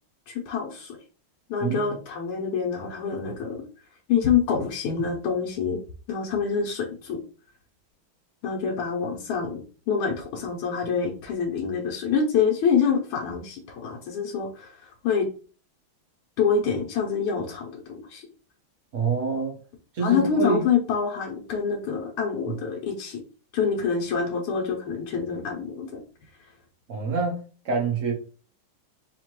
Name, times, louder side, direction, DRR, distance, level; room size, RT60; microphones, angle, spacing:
voice 1, 0.3-1.0 1.5-3.6 4.1-5.8 6.1-7.2 8.4-15.3 16.4-18.2 20.0-23.2 23.5-26.0, left 6 dB, 90° left, 1.7 m, -26 dB
voice 2, 1.6-2.0 18.9-19.6 19.9-20.6 22.4-22.5 26.9-28.1, right 4 dB, 50° right, 1.0 m, -26 dB
4.5 x 2.8 x 2.9 m
omnidirectional pair, 2.4 m